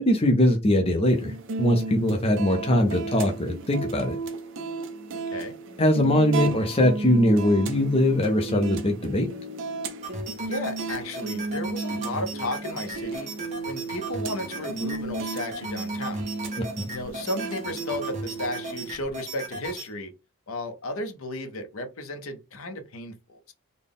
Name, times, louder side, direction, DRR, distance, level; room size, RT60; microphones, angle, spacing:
voice 1, 0.0-1.3 1.6-4.2 5.8-9.3 16.8-16.9, left 1 dB, 25° left, 0.5 m, -21 dB
sound 1, 1.1-18.9, right 3 dB, 55° right, 0.6 m, -34 dB
voice 2, 5.1-5.5 10.5-13.3 13.7-16.3 16.9-20.1 20.5-23.5, left 1 dB, 65° left, 0.7 m, -34 dB
sound 2, 10.0-19.9, right 2 dB, 30° right, 1.0 m, -37 dB
4.0 x 2.2 x 3.4 m
head